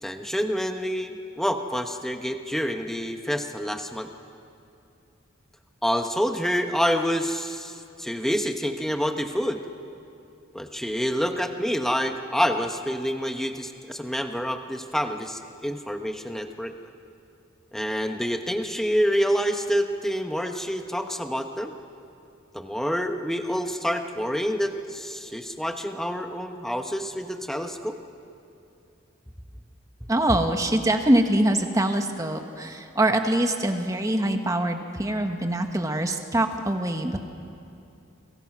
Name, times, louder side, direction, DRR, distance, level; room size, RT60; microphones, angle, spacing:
voice 1, 0.0-4.1 5.8-9.6 10.5-16.7 17.7-21.7 22.5-28.0 30.0-30.1, equal, ahead, 5 dB, 1.2 m, -27 dB
voice 2, 30.1-37.2, right 1 dB, 15° right, 5 dB, 1.5 m, -24 dB
29.5 x 25.0 x 6.1 m, 2.7 s
head